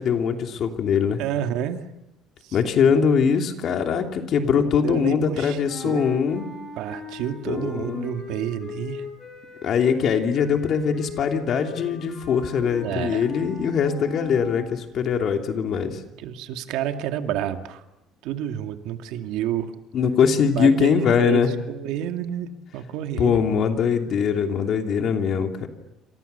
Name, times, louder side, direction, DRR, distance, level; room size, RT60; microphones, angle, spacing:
voice 1, 0.0-1.2 2.5-6.5 7.5-8.1 9.6-16.0 19.9-21.5 23.2-25.7, left 6 dB, 45° left, 4 dB, 2.9 m, -22 dB
voice 2, 1.2-1.8 2.4-2.6 4.4-6.1 6.8-9.1 12.8-13.3 16.2-17.8 18.2-19.7 20.6-21.4 21.7-23.4, right 10 dB, 75° right, 6 dB, 2.2 m, -29 dB
sound 1, 5.7-14.8, left 5 dB, 20° left, 6.2 m, -39 dB
28.5 x 27.0 x 6.9 m, 0.92 s
cardioid pair, 160°, 0 cm